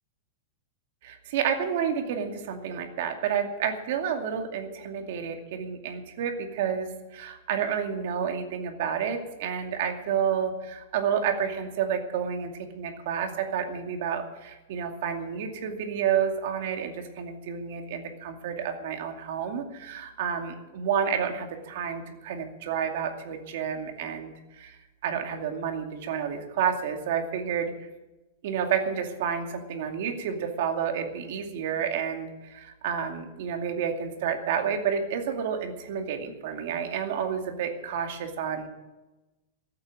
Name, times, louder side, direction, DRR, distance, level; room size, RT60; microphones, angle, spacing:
voice 1, 1.0-27.7 28.4-38.7, right 7 dB, 55° right, 4 dB, 2.4 m, -30 dB
14.5 x 8.8 x 8.9 m, 1.1 s
supercardioid pair, 170°, 0 cm